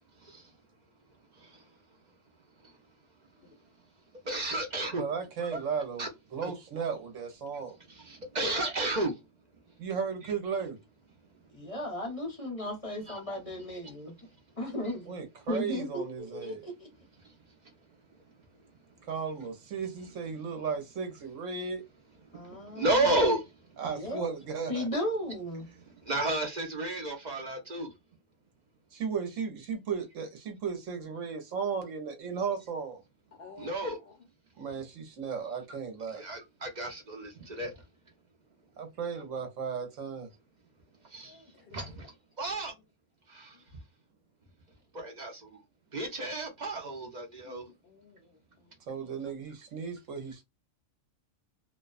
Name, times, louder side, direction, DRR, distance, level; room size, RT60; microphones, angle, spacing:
voice 1, 3.3-3.7 6.4-6.5 33.3-34.3 41.2-42.0 42.5-42.6 43.5-43.7 47.4-49.1, left 4 dB, 55° left, 0.8 m, -55 dB
voice 2, 4.3-5.0 5.5-5.6 6.0-6.1 8.0-9.1 10.2-10.3 13.1-13.2 22.8-23.4 26.1-27.9 33.6-34.0 36.2-37.7 41.1-41.3 41.7-42.1 42.4-42.7 43.3-43.5 44.9-45.3 45.9-47.6, right 2 dB, 45° right, 0.6 m, -31 dB
voice 3, 5.0-6.1 6.3-7.8 9.8-10.8 15.1-16.7 19.1-21.8 23.8-24.9 28.9-33.0 34.6-36.2 38.8-40.3 48.9-50.4, right 6 dB, 65° right, 1.1 m, -35 dB
voice 4, 11.5-14.1 14.6-15.1 15.5-16.7 22.3-23.1 23.9-24.3 24.7-25.7, left 1 dB, 30° left, 0.9 m, -35 dB
2.5 x 2.2 x 2.3 m
omnidirectional pair, 1.5 m